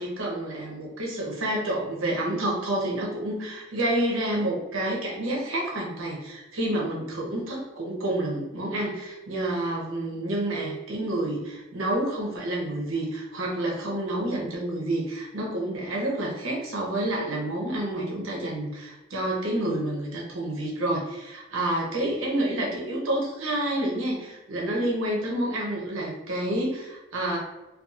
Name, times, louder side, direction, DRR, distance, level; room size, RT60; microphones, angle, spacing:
voice 1, 0.0-27.4, right 1 dB, 80° right, -2 dB, 0.7 m, -29 dB
2.7 x 2.3 x 2.3 m, 1.1 s
head